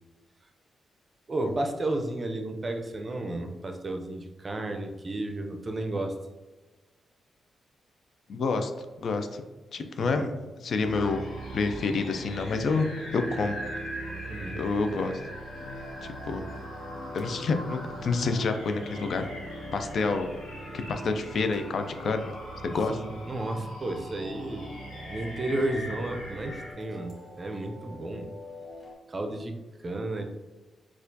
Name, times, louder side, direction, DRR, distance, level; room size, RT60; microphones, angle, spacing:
voice 1, 1.3-6.2 10.0-10.3 14.3-14.6 22.9-24.7 25.1-28.3 29.1-29.5 29.8-30.2, right 2 dB, 40° right, 5 dB, 0.5 m, -32 dB
voice 2, 8.3-9.4 9.7-10.3 10.6-11.2 11.5-12.9 13.1-13.6 14.6-15.2 16.0-16.4 17.1-19.3 19.7-20.3 20.7-22.3 22.6-23.0, left 4 dB, 65° left, 7 dB, 0.4 m, -28 dB
sound 1, 10.8-26.7, right 1 dB, 85° left, 1.0 m, -40 dB
sound 2, 15.4-28.9, left 2 dB, 15° right, 1.4 m, -46 dB
4.2 x 2.4 x 2.7 m, 1.2 s
supercardioid pair, 55°, 0 cm